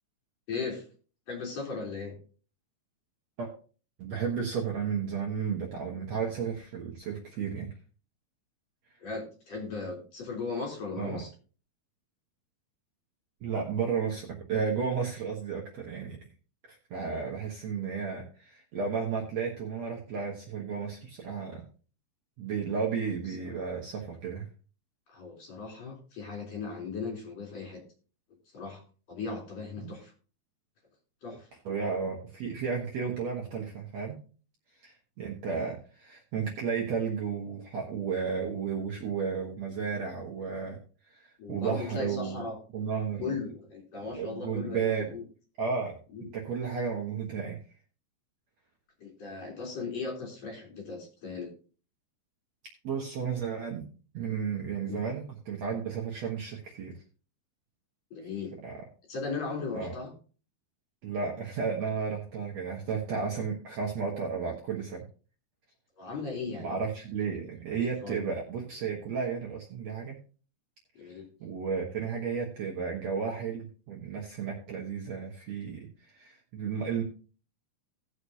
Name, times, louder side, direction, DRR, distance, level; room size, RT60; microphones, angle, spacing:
voice 1, 0.5-0.8 1.3-2.1 9.0-11.3 25.1-27.8 28.5-28.8 29.1-30.1 31.2-31.5 41.4-42.6 43.2-45.2 46.1-46.3 49.0-51.5 54.9-55.0 58.1-58.5 59.1-60.1 66.0-66.7 67.3-67.5 68.0-68.2 71.0-71.3, left 4 dB, 45° left, 0 dB, 4.5 m, -37 dB
voice 2, 4.0-7.7 11.0-11.2 13.4-16.2 16.7-21.7 22.4-24.5 29.8-29.9 31.7-34.2 34.8-40.8 41.1-42.4 42.7-43.4 44.2-45.1 45.6-46.0 46.3-47.6 52.8-53.9 54.1-56.9 58.6-58.8 59.7-59.9 61.0-65.0 66.6-70.2 71.0-77.0, right 6 dB, 55° right, -1 dB, 2.1 m, -33 dB
18.0 x 6.4 x 2.8 m, 0.38 s
omnidirectional pair, 4.4 m